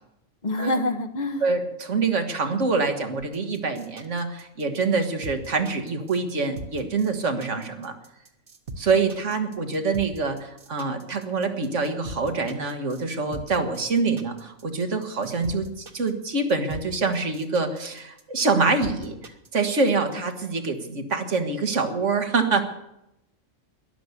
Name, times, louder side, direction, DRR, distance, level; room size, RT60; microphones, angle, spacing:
voice 1, 0.4-1.4, left 1 dB, 35° left, 10 dB, 1.2 m, -26 dB
voice 2, 1.4-8.0 8.8-19.2 19.5-22.6, right 4 dB, 75° right, 6 dB, 2.0 m, -25 dB
sound 1, 3.3-19.9, right 2 dB, 45° right, 1.5 m, -40 dB
13.0 x 11.5 x 8.2 m, 0.85 s
omnidirectional pair, 1.3 m